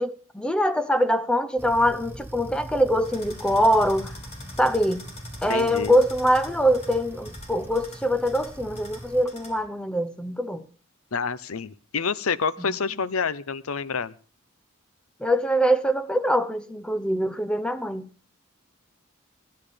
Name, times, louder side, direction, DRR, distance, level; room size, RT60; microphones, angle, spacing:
voice 1, 0.0-4.1 4.6-5.0 5.4-10.6 15.2-18.1, equal, 5° left, 0.8 m, -23 dB
sound 1, 1.6-9.2, right 1 dB, 10° right, 1.2 m, -42 dB
sound 2, 3.0-9.7, left 2 dB, 35° left, 3.8 m, -45 dB
voice 2, 5.5-5.9 11.1-14.1, left 5 dB, 80° left, 0.8 m, -28 dB
15.5 x 12.0 x 5.2 m
head